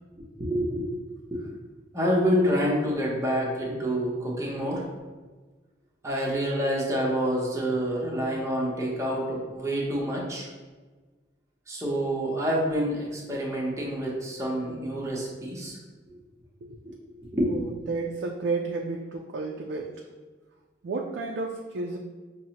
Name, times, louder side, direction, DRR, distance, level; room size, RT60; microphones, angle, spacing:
voice 1, 0.2-0.9 1.3-1.4 1.9-4.8 6.0-10.5 11.7-15.8 17.3-17.6, equal, 15° right, -4 dB, 0.8 m, -27 dB
voice 2, 16.6-17.0 17.5-20.0 20.8-22.0, right 3 dB, 65° right, 1 dB, 0.3 m, -32 dB
5.9 x 2.0 x 2.8 m, 1.3 s
head